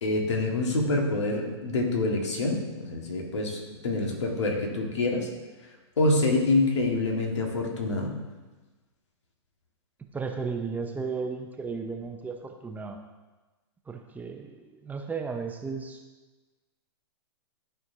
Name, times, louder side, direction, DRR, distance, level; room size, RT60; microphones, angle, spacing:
voice 1, 0.0-5.3 6.0-8.2, left 2 dB, 80° left, 1 dB, 1.7 m, -26 dB
voice 2, 10.1-13.0 13.9-16.0, right 5 dB, 10° right, 3 dB, 0.6 m, -34 dB
12.5 x 4.5 x 2.7 m, 1.2 s
hypercardioid pair, 120°, 15 cm